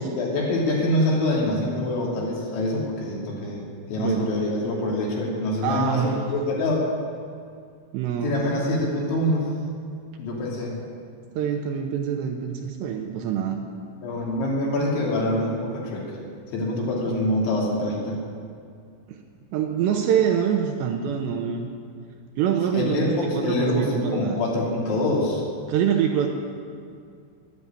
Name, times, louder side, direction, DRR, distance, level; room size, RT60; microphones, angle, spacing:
voice 1, 0.0-3.6 3.9-6.9 8.2-9.5 10.2-10.7 14.0-16.2 16.5-18.2 22.7-25.4, left 1 dB, 70° left, -4 dB, 5.0 m, -25 dB
voice 2, 4.0-4.3 5.6-6.3 7.9-8.4 11.4-13.6 19.1-19.2 19.5-21.7 22.4-24.4 25.7-26.3, right 8 dB, 80° right, 3 dB, 2.7 m, -25 dB
11.5 x 11.0 x 8.9 m, 2.2 s
omnidirectional pair, 5.6 m